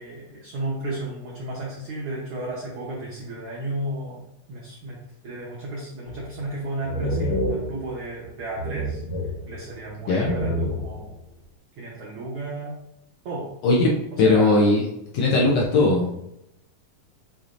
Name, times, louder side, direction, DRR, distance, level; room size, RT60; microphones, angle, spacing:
voice 1, 0.0-4.2 4.5-5.0 5.2-9.0 9.4-11.2 11.8-12.8 13.2-13.5 14.1-14.7 15.3-15.4, right 1 dB, 85° right, -5 dB, 1.2 m, -33 dB
sound 1, 6.0-6.5 6.8-8.3 8.5-9.9 10.2-11.2, equal, 55° left, 1.6 m, -29 dB
voice 2, 10.1-10.4 13.6-14.8 15.1-16.2, left 2 dB, 70° left, -4 dB, 1.6 m, -19 dB
6.7 x 2.9 x 2.5 m, 0.82 s
omnidirectional pair, 3.7 m